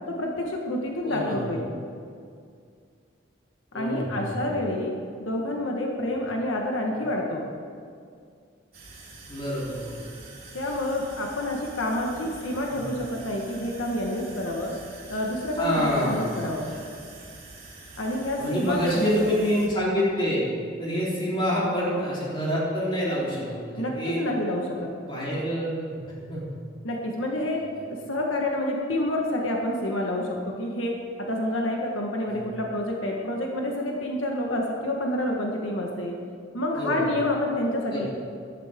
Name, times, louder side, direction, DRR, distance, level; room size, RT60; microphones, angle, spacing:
voice 1, 0.1-1.6 3.7-4.9 5.2-7.4 10.5-14.7 15.1-16.7 18.0-19.1 23.8-24.9 26.8-27.6 27.9-30.9 31.2-36.1 36.5-38.1, left 1 dB, 85° left, 0 dB, 1.5 m, -28 dB
voice 2, 1.0-1.5 3.7-4.6 9.3-10.1 12.7-12.8 15.6-16.4 18.4-20.5 20.8-24.2 25.0-26.6 27.7-27.8 32.3-32.5 36.7-37.1 37.9-38.1, equal, 25° left, -7 dB, 3.8 m, -27 dB
sound 1, 8.7-19.7, right 2 dB, 50° right, 3.1 m, -45 dB
14.0 x 12.5 x 3.7 m, 2.2 s
head